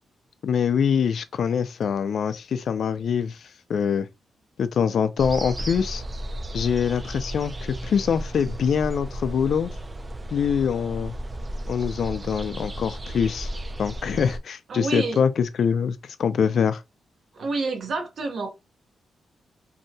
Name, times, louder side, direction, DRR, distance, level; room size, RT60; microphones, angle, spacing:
voice 1, 0.4-4.1 4.6-6.0 6.5-9.7 10.3-11.1 11.7-13.5 13.8-16.8, left 7 dB, 65° left, 0.3 m, -24 dB
sound 1, 5.2-14.4, right 1 dB, 25° right, 0.3 m, -34 dB
voice 2, 14.7-15.2 17.3-18.5, right 3 dB, 60° right, 0.7 m, -28 dB
2.6 x 2.2 x 2.6 m
cardioid pair, 110°, 0 cm